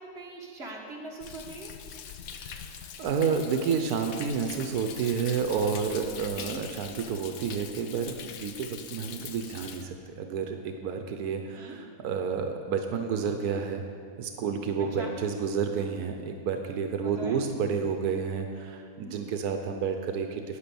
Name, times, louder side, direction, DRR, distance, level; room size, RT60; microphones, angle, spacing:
voice 1, 0.0-1.7 6.2-6.6 9.1-9.3 11.5-11.8 14.9-15.1 16.9-17.4 19.0-19.2, right 2 dB, 45° right, -1 dB, 2.0 m, -42 dB
Thunder, 1.2-9.8, left 8 dB, 70° left, 1.1 m, -43 dB
voice 2, 2.3-13.8 14.2-20.6, right 6 dB, 85° right, 5 dB, 1.3 m, -30 dB
9.9 x 9.7 x 6.9 m, 2.3 s
omnidirectional pair, 1.6 m